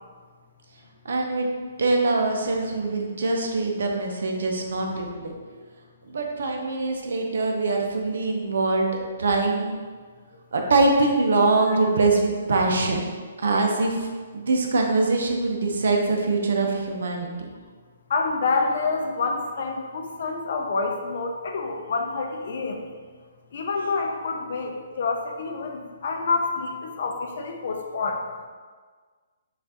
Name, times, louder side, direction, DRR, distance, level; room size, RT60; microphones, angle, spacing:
voice 1, 1.0-1.5 1.8-5.3 6.1-8.9 9.2-9.7 10.5-13.0 13.4-17.3, right 3 dB, 75° right, 2 dB, 0.7 m, -23 dB
voice 2, 18.1-22.8 23.5-28.2, left 4 dB, 55° left, 3 dB, 0.5 m, -27 dB
5.7 x 2.5 x 2.8 m, 1.5 s
hypercardioid pair, 165°, 0 cm